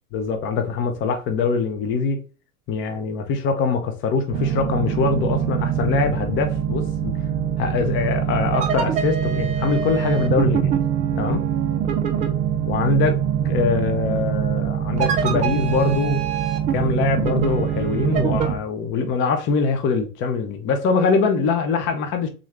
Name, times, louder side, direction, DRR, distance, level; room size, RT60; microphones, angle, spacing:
voice 1, 0.1-2.2 2.7-7.1 7.6-10.8 11.2-11.5 12.7-16.2 16.7-22.3, left 5 dB, 25° left, 0.6 m, -23 dB
sound 1, 4.3-18.6, right 9 dB, 15° right, 0.4 m, -23 dB
3.8 x 3.1 x 3.5 m
hypercardioid pair, 110°, 44 cm